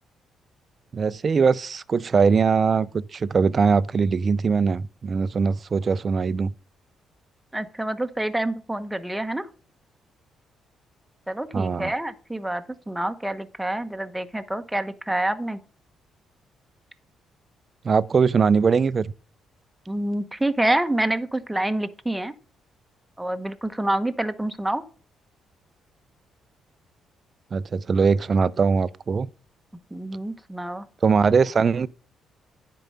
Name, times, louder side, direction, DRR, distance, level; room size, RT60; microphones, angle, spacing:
voice 1, 0.9-6.5 11.5-11.9 17.8-19.1 27.5-29.3 31.0-31.9, right 5 dB, 40° right, 0.4 m, -21 dB
voice 2, 7.5-9.5 11.3-15.6 19.9-22.3 23.2-24.8 29.9-30.9, right 1 dB, 5° right, 0.9 m, -27 dB
9.7 x 4.7 x 5.4 m
cardioid pair, 90°, 0 cm